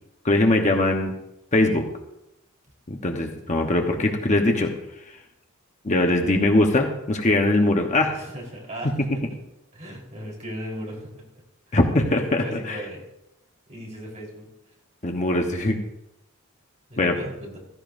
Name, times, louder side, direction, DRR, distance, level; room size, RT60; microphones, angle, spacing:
voice 1, 0.2-1.1 1.5-1.8 2.9-4.7 5.8-8.2 11.7-12.8 15.0-15.8 17.0-17.2, left 2 dB, 35° left, 3 dB, 1.1 m, -21 dB
voice 2, 8.1-8.9 9.7-11.2 12.4-13.0 13.7-14.5 16.9-17.6, equal, 35° right, -2 dB, 4.1 m, -37 dB
15.5 x 14.5 x 2.7 m, 0.86 s
head